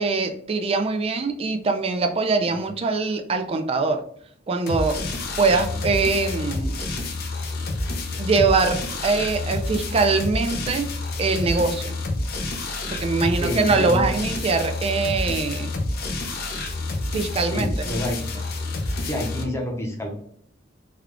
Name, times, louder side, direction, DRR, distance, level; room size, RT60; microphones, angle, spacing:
voice 1, 0.0-4.0 4.5-5.0 5.4-6.8 8.2-10.9 11.2-12.0 12.9-15.7 17.1-17.9, right 4 dB, 30° right, 6 dB, 0.4 m, -23 dB
sound 1, 4.7-19.4, left 2 dB, 55° left, 0.6 m, -28 dB
voice 2, 13.2-14.1 17.3-18.2 19.0-20.1, left 1 dB, 15° left, 0 dB, 0.7 m, -29 dB
3.6 x 2.3 x 3.3 m, 0.64 s
head